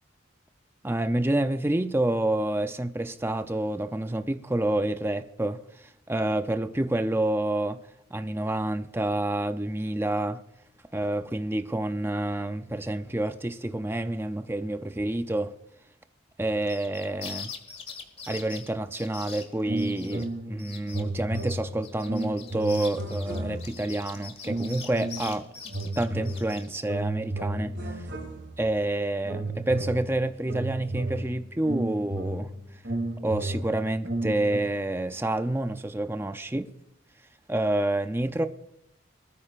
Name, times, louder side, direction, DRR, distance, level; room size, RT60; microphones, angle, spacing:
voice 1, 0.8-7.8 8.1-10.4 10.9-15.5 16.4-17.5 18.3-25.5 25.8-28.1 28.6-32.5 33.2-36.7 37.5-38.5, right 1 dB, 10° right, 0.5 m, -28 dB
sound 1, 16.6-20.3 20.6-21.0 21.3-26.7, left 6 dB, 30° left, 1.6 m, -42 dB
sound 2, 19.6-20.6 20.8-23.9 24.4-25.3 25.6-28.7 29.2-34.6, right 2 dB, 65° right, 2.7 m, -33 dB
21.0 x 13.5 x 2.5 m
head